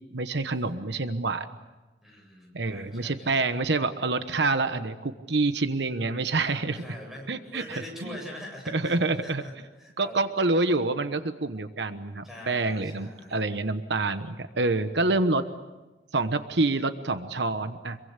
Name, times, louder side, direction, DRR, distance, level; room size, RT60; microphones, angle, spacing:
voice 1, 0.1-1.5 2.5-6.8 7.3-8.2 8.7-9.4 10.0-15.4 16.1-18.0, right 3 dB, 80° right, 10 dB, 1.1 m, -27 dB
voice 2, 2.0-3.4 6.4-8.9 9.2-9.5 9.8-10.3 12.2-13.3, left 1 dB, ahead, 0 dB, 7.9 m, -43 dB
26.5 x 23.0 x 8.2 m, 1.1 s
head